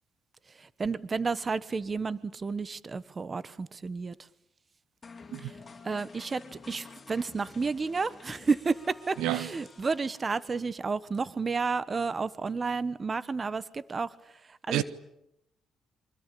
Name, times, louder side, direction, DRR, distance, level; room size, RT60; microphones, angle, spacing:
voice 1, 0.6-4.1 5.4-5.5 5.8-14.2 14.5-14.8, right 4 dB, 35° right, 1.3 m, -31 dB
sound 1, 5.0-10.7, left 4 dB, 30° left, 4.4 m, -50 dB
voice 2, 9.2-9.5 14.7-14.8, right 13 dB, 90° right, 1.4 m, -29 dB
27.0 x 25.0 x 8.6 m
cardioid pair, 90°, 0 cm